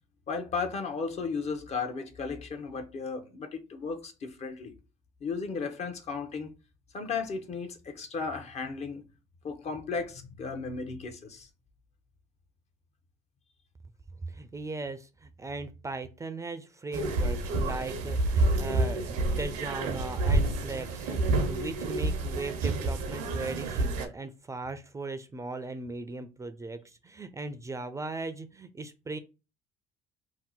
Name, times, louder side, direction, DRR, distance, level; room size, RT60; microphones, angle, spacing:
voice 1, 0.3-4.7 5.2-6.5 6.9-9.1 9.4-11.5, left 5 dB, 50° left, 0.7 m, -35 dB
voice 2, 14.3-29.2, right 3 dB, 20° right, 0.4 m, -38 dB
sound 1, 16.9-24.1, right 2 dB, 85° right, 0.7 m, -28 dB
2.8 x 2.0 x 3.8 m
supercardioid pair, 75°, 15 cm